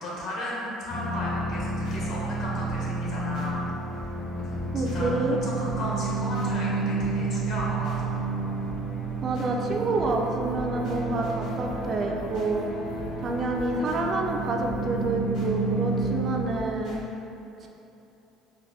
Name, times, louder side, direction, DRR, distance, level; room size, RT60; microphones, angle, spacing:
voice 1, 0.0-4.1 4.4-8.2 17.6-17.7, left 1 dB, 55° left, -6 dB, 1.0 m, -35 dB
sound 1, 0.9-16.4, right 3 dB, 30° left, 0.7 m, -30 dB
sound 2, 1.1-17.0, left 1 dB, 85° left, 1.3 m, -45 dB
voice 2, 4.7-5.4 9.2-12.7 13.2-17.0 17.6-17.7, right 2 dB, 40° right, 1 dB, 0.3 m, -28 dB
sound 3, 9.7-15.2, right 1 dB, 90° right, 0.8 m, -45 dB
3.9 x 2.1 x 3.5 m, 2.9 s
cardioid pair, 130°, 0 cm